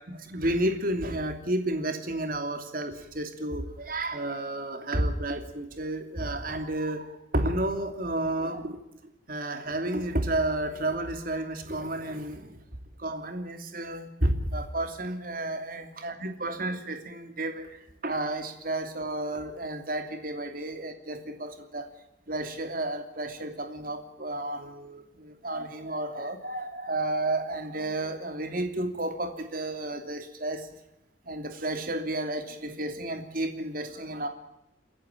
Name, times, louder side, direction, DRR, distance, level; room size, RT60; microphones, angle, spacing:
voice 1, 0.1-7.1 7.3-8.8 9.3-12.6 13.0-17.7 18.0-21.9 22.3-30.7 31.3-34.3, right 1 dB, 50° right, 7 dB, 2.9 m, -31 dB
29.5 x 11.0 x 9.0 m, 0.91 s
head